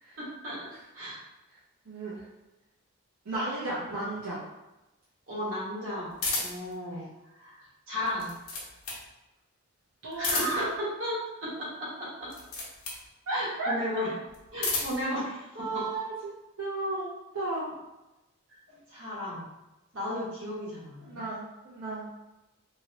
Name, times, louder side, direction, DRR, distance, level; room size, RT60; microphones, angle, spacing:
voice 1, 0.2-0.7 0.9-1.2 5.3-8.3 10.1-12.3 13.3-14.1 14.5-15.9 18.7-19.5 19.9-21.2, equal, 60° right, -7 dB, 1.3 m, -34 dB
voice 2, 1.9-2.2 3.2-4.4 10.0-10.5 13.3-13.7 15.6-16.3 16.6-17.7 21.0-22.1, right 2 dB, 85° right, -8 dB, 0.8 m, -34 dB
sound 1, 6.2-6.7 8.0-9.1 10.1-10.8 12.2-13.0 14.3-15.1, left 3 dB, 80° left, 0.9 m, -32 dB
2.9 x 2.9 x 2.8 m, 1.0 s
head